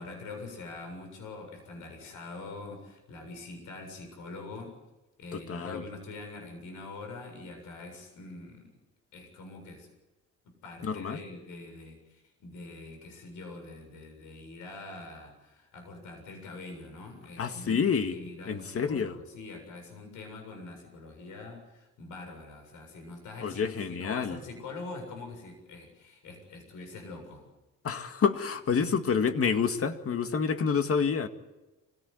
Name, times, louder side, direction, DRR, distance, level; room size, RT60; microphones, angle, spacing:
voice 1, 0.0-4.8 5.2-8.8 9.1-9.9 10.6-17.8 18.1-27.5, left 3 dB, 85° left, 4 dB, 7.3 m, -44 dB
voice 2, 5.3-5.8 10.8-11.2 17.4-18.2 18.5-19.2 23.4-24.4 27.8-31.3, left 6 dB, 50° left, 8 dB, 2.1 m, -28 dB
25.0 x 17.5 x 9.7 m, 1.1 s
cardioid pair, 90°, 30 cm